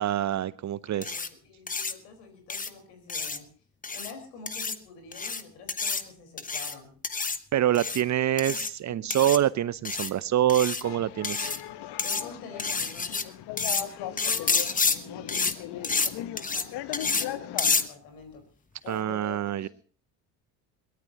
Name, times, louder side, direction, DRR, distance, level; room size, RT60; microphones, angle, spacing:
voice 1, 0.0-1.1 7.5-11.5 18.9-19.7, right 11 dB, 35° right, 19 dB, 0.7 m, -26 dB
voice 2, 0.9-3.5 3.9-6.9 8.5-8.6 8.9-9.1 12.0-13.3 13.7-18.4 18.8-19.7, left 4 dB, 75° left, 5 dB, 4.6 m, -47 dB
sound 1, 1.0-1.3 1.7-1.9 2.5-2.7 3.1-3.4 3.8-4.1 4.5-4.8 5.1-5.4 5.7-6.0 6.4-6.7 7.0-7.4 7.7-8.0 8.4-8.7 9.1-9.4 9.9-10.1 10.5-10.8 11.2-11.6 12.0-12.2 12.6-13.2 13.6-13.8 14.2-15.0 15.3-15.5 15.8-16.1 16.4-16.6 16.9-17.3 17.6-17.8, left 4 dB, 15° left, 1.1 m, -28 dB
sound 2, 10.8-17.9, left 12 dB, 55° left, 1.1 m, -38 dB
22.0 x 18.0 x 2.9 m, 0.42 s
hypercardioid pair, 55°, 47 cm